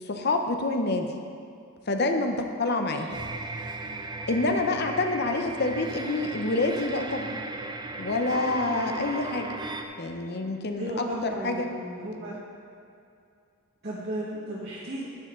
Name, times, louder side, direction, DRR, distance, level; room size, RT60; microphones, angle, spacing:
voice 1, 0.1-1.1 1.9-3.2 4.3-7.4 8.0-9.5 10.0-11.7, left 2 dB, 50° left, 5 dB, 0.7 m, -27 dB
sound 1, 2.9-9.8, right 2 dB, 20° right, 0.5 m, -36 dB
voice 2, 10.8-12.4 13.8-15.1, right 1 dB, 50° right, -7 dB, 1.5 m, -34 dB
10.5 x 10.0 x 3.8 m, 2.5 s
head